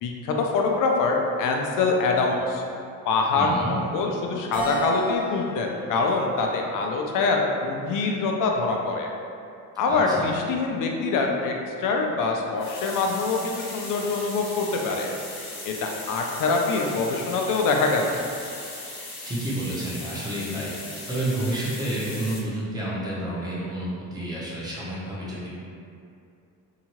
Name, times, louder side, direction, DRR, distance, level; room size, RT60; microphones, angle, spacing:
voice 1, 0.0-2.6 3.1-9.1 9.8-15.1 15.6-18.2, left 3 dB, 75° left, 1 dB, 0.5 m, -24 dB
voice 2, 3.3-3.8 9.9-10.3 19.2-20.7 21.1-25.6, right 1 dB, 10° right, -8 dB, 0.7 m, -30 dB
Keyboard (musical), 4.5-7.0 7.6-8.8, equal, 75° right, 1.2 m, -36 dB
sound 1, 12.6-22.4, left 2 dB, 55° left, 0.8 m, -38 dB
2.8 x 2.3 x 2.9 m, 2.5 s
cardioid pair, 135°, 33 cm